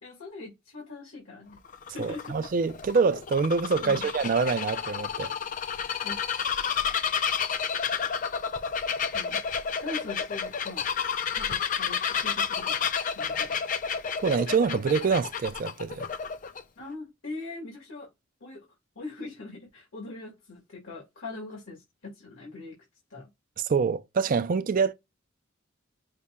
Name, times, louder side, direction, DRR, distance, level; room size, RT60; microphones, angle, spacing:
voice 1, 0.0-2.3 3.8-4.1 6.0-6.3 9.0-9.4 9.8-10.8 11.3-12.8 13.1-13.6 16.8-18.1 18.4-18.6 18.9-22.8 23.1-23.3, left 3 dB, 85° left, 1.6 m, -41 dB
Bird vocalization bird call bird song, 1.6-16.6, left 7 dB, 40° left, 0.4 m, -30 dB
voice 2, 2.0-5.3 14.2-16.1 23.7-24.9, right 5 dB, 40° right, 0.3 m, -25 dB
5.6 x 2.1 x 3.5 m
head